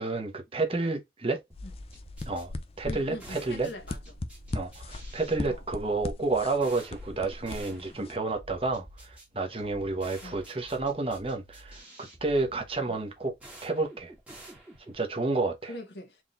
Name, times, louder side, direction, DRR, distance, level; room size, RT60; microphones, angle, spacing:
voice 1, 0.0-1.4 2.3-3.7 4.5-11.8 12.2-13.3 13.6-14.1 14.9-15.7, right 3 dB, 30° right, 1.1 m, -30 dB
sound 1, 1.5-8.1, left 2 dB, 35° left, 0.5 m, -39 dB
sound 2, 1.5-15.1, right 1 dB, 5° right, 1.9 m, -50 dB
voice 2, 2.8-4.2 5.5-5.6 10.2-10.4 12.9-13.1 15.6-16.2, left 1 dB, 75° left, 1.6 m, -43 dB
4.6 x 3.8 x 2.6 m
head